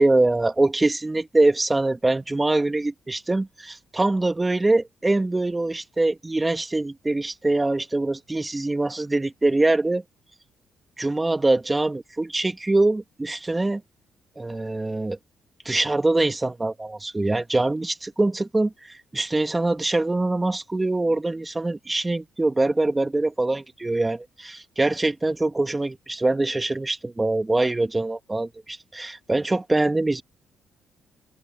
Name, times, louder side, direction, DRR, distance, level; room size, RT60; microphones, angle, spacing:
voice 1, 0.0-10.0 11.0-13.8 14.4-15.2 15.6-30.2, right 2 dB, 15° right, 2.7 m, -23 dB
open air
cardioid pair, 90°, 0 cm